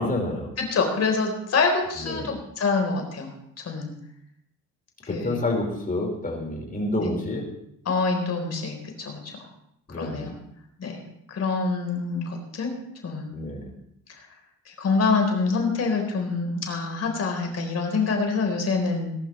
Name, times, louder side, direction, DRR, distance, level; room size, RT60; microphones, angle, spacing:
voice 1, 0.0-0.5 2.0-2.4 5.1-7.4 9.9-10.3 13.3-13.7, left 1 dB, 30° left, 1 dB, 5.2 m, -28 dB
voice 2, 0.6-3.9 5.1-5.4 7.0-7.1 7.9-9.3 9.9-10.3 10.8-11.0 11.3-12.7 13.0-13.4 14.7-19.2, left 4 dB, 55° left, 3 dB, 4.2 m, -26 dB
21.0 x 11.5 x 3.3 m, 0.74 s
cardioid pair, 90°, 30 cm